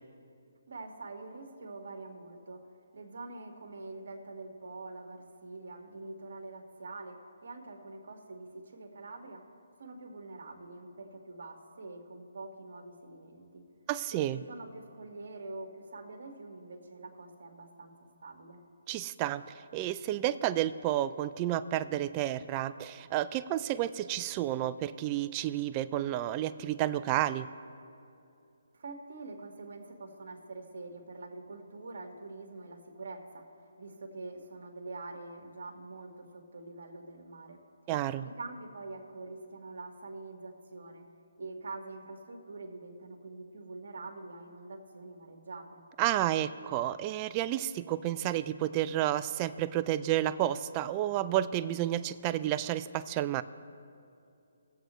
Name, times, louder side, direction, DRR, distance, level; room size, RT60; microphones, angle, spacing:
voice 1, 0.7-9.4 9.8-13.6 14.1-17.9 18.2-18.6 28.7-37.6 38.2-41.0 41.4-45.8, right 3 dB, 65° right, 3 dB, 1.8 m, -45 dB
voice 2, 13.9-14.4 18.9-19.4 19.7-27.5 37.9-38.3 46.0-53.4, right 13 dB, 25° right, 13 dB, 0.3 m, -31 dB
20.0 x 7.8 x 3.1 m, 2.6 s
hypercardioid pair, 155°, 0 cm